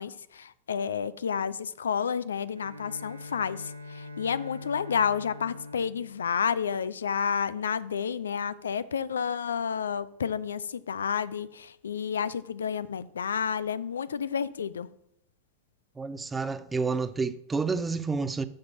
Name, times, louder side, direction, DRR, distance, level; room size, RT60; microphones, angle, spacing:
voice 1, 0.0-14.9, left 7 dB, 70° left, 0.3 m, -30 dB
Bowed string instrument, 2.6-7.3, left 2 dB, 80° right, 0.7 m, -44 dB
voice 2, 16.0-18.5, right 4 dB, 15° right, 0.5 m, -29 dB
6.4 x 5.8 x 6.1 m
figure-of-eight pair, 90°, 0 cm